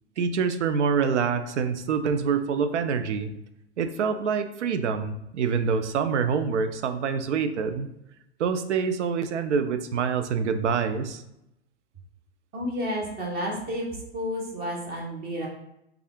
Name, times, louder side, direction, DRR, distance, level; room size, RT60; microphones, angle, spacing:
voice 1, 0.2-3.3 3.8-7.9 8.4-11.2, right 6 dB, 85° right, 10 dB, 0.5 m, -26 dB
voice 2, 12.5-15.5, equal, 25° right, -1 dB, 1.0 m, -31 dB
3.5 x 2.4 x 3.5 m, 0.84 s
hypercardioid pair, 120°, 34 cm